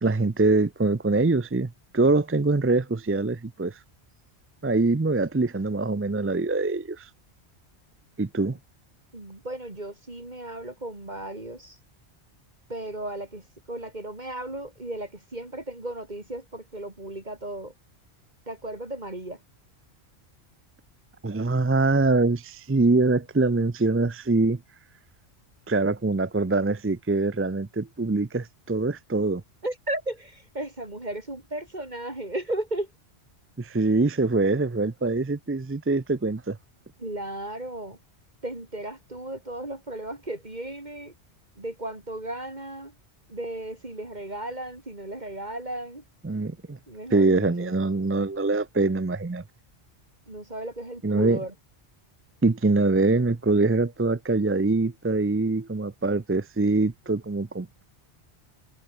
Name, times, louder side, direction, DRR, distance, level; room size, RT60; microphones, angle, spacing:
voice 1, 0.0-3.8 4.6-7.1 8.2-8.6 21.2-24.6 25.7-29.4 33.6-36.6 46.2-46.8 47.1-49.4 51.0-51.4 52.4-57.8, right 3 dB, 20° right, 0.3 m, -24 dB
voice 2, 9.1-11.8 12.7-17.7 18.5-19.4 29.6-32.9 37.0-38.0 38.4-41.1 41.5-42.9 43.3-46.0 46.9-47.7 50.3-51.5, right 1 dB, 40° right, 3.5 m, -35 dB
omnidirectional pair, 1.1 m